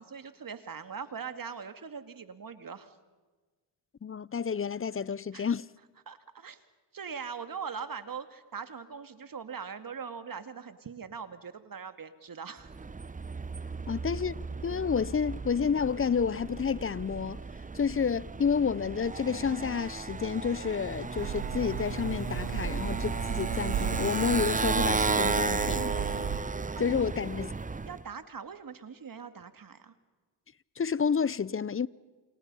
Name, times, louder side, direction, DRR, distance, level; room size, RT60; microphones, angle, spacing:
voice 1, 0.0-3.0 5.3-5.5 6.1-6.6 6.9-12.9 26.8-27.0 27.8-29.9, right 6 dB, 40° right, 2.3 m, -41 dB
voice 2, 4.0-5.6 13.9-17.4 17.7-26.2 26.8-27.5 30.8-31.9, left 6 dB, 25° left, 0.7 m, -30 dB
Motorcycle, 12.6-28.0, right 4 dB, 15° right, 0.9 m, -34 dB
sound 1, 21.2-26.4, right 8 dB, 65° right, 3.1 m, -34 dB
29.5 x 28.0 x 5.6 m
supercardioid pair, 60°, 49 cm